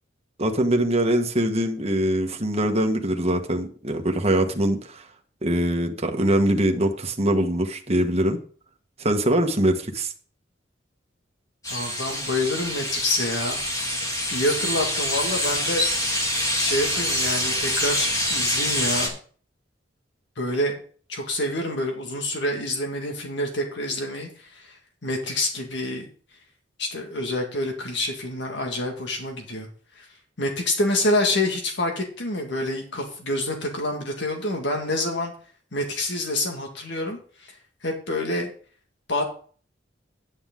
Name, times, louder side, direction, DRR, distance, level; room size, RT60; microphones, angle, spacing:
voice 1, 0.4-5.1 5.4-8.4 9.0-10.1, right 1 dB, 35° right, 4 dB, 1.4 m, -23 dB
sound 1, 11.6-19.1, left 1 dB, 20° left, 2.1 m, -26 dB
voice 2, 11.7-13.6 14.3-15.8 16.6-19.1 20.4-20.8 21.1-26.1 26.8-29.7 30.0-30.1 30.4-35.3 35.7-37.5 37.8-38.5 39.1-39.2, left 1 dB, 65° left, 2 dB, 1.9 m, -27 dB
9.7 x 8.9 x 3.7 m, 0.42 s
head